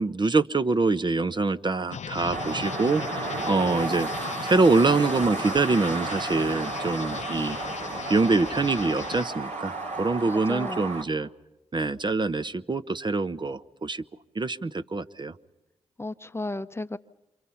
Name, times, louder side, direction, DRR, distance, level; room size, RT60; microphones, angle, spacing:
voice 1, 0.0-4.1 4.4-7.6 8.1-11.3 11.7-14.0 14.3-15.3, right 3 dB, 35° right, 12 dB, 0.8 m, -25 dB
sound 1, 1.9-9.3, left 7 dB, 55° left, 0.8 m, -38 dB
sound 2, 2.3-11.0, right 3 dB, 55° right, 2.7 m, -33 dB
voice 2, 10.3-10.9 16.0-17.0, left 2 dB, 15° left, 12 dB, 0.8 m, -34 dB
27.5 x 25.5 x 5.7 m, 0.96 s
hypercardioid pair, 40°, 14 cm